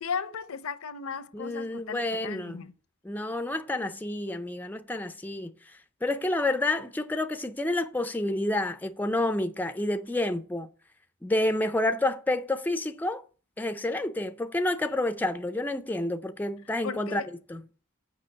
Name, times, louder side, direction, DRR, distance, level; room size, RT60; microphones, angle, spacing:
voice 1, 0.0-2.7 16.8-17.3, left 6 dB, 75° left, 0.6 m, -36 dB
voice 2, 1.3-2.6 3.0-10.7 11.2-13.2 13.6-17.2 17.5-17.6, left 1 dB, 10° left, 0.4 m, -29 dB
6.8 x 5.1 x 7.1 m
head